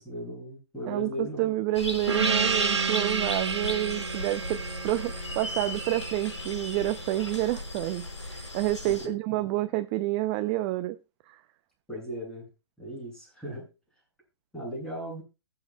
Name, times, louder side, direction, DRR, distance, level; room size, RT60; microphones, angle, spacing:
voice 1, 0.0-1.4 8.9-9.5 11.9-12.5 12.8-13.7 14.5-15.2, equal, 5° left, 6.9 m, -37 dB
voice 2, 0.9-4.6 4.8-11.0 11.3-11.4, right 16 dB, 25° right, 0.5 m, -29 dB
sound 1, 1.7-9.1, left 1 dB, 85° left, 5.1 m, -37 dB
Gong, 2.1-7.1, right 5 dB, 75° right, 1.4 m, -30 dB
22.5 x 7.5 x 2.3 m
figure-of-eight pair, 130°, 15 cm